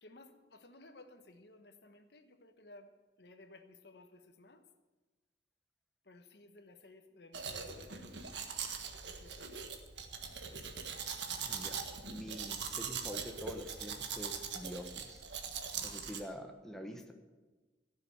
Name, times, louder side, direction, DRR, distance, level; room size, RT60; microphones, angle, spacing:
voice 1, 0.0-2.9 3.2-4.6 6.1-8.1 9.0-9.6 16.8-17.1, left 2 dB, 65° left, 7 dB, 1.2 m, -57 dB
Domestic sounds home sounds, 7.3-16.2, right 6 dB, 85° right, 1.6 m, -41 dB
voice 2, 11.4-11.8 12.1-15.2 15.8-17.1, equal, 5° left, 4 dB, 1.1 m, -46 dB
15.5 x 7.0 x 9.3 m, 1.2 s
head